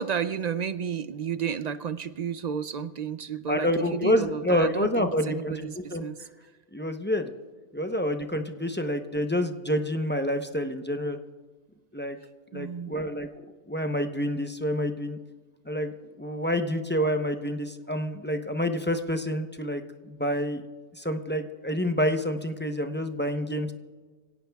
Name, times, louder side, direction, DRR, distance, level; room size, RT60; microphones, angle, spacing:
voice 1, 0.0-6.2 12.5-13.0, right 7 dB, 55° right, 13 dB, 0.4 m, -32 dB
voice 2, 3.5-6.0 6.7-7.3 7.7-11.2 11.9-12.2 12.5-13.3 13.7-15.2 15.7-20.6 20.9-23.7, equal, 10° left, 6 dB, 0.7 m, -28 dB
25.5 x 17.0 x 2.3 m, 1.4 s
omnidirectional pair, 1.1 m